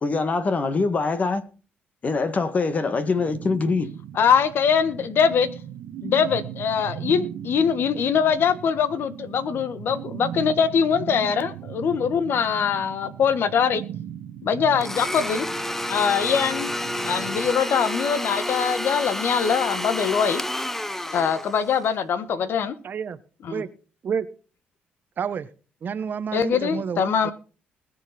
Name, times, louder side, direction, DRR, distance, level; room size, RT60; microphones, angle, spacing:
voice 1, 0.0-1.4 2.0-3.9, left 4 dB, 35° left, 1.8 m, -23 dB
sound 1, 3.2-17.5, right 11 dB, 75° right, 1.1 m, -38 dB
voice 2, 4.1-5.5 6.0-13.8 14.4-15.5 15.9-16.7 17.0-20.4 21.1-22.7 23.4-23.6 26.3-27.3, left 7 dB, 60° left, 1.3 m, -22 dB
Domestic sounds home sounds, 14.8-21.9, left 1 dB, 10° left, 0.7 m, -29 dB
voice 3, 22.8-23.2 23.5-23.7 24.0-24.3 25.2-25.5 25.8-27.3, right 7 dB, 50° right, 1.0 m, -29 dB
21.0 x 7.1 x 4.3 m
cardioid pair, 90°, 4 cm